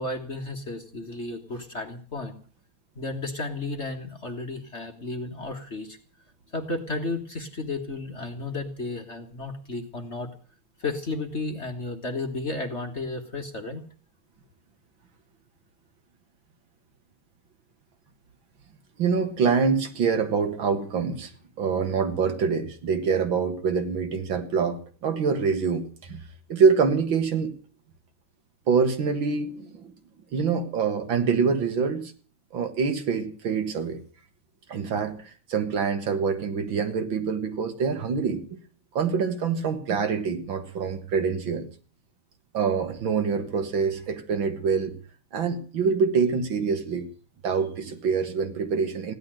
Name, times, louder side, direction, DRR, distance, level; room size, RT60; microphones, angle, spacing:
voice 1, 0.0-2.3 2.9-6.0 6.5-10.3 10.8-13.8, left 2 dB, 35° left, 4 dB, 1.6 m, -33 dB
voice 2, 19.0-21.3 21.6-26.2 26.5-27.5 28.7-29.9 30.3-32.1 32.5-34.0 34.7-38.6 39.0-41.7 42.5-44.9 45.3-47.1 47.4-49.1, right 5 dB, 65° right, 8 dB, 2.3 m, -25 dB
15.5 x 11.0 x 7.6 m, 0.41 s
omnidirectional pair, 2.4 m